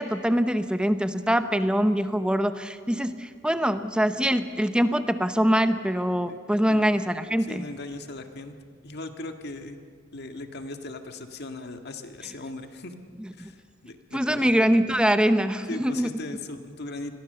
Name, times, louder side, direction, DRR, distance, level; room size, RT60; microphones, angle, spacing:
voice 1, 0.0-7.7 13.2-13.5 14.1-16.1, equal, 5° right, 10 dB, 0.8 m, -24 dB
voice 2, 7.4-8.6 8.8-9.8 10.1-12.9 13.4-13.6 13.8-14.5 15.7-17.1, left 2 dB, 55° left, 6 dB, 1.8 m, -38 dB
27.5 x 21.5 x 6.8 m, 2.2 s
head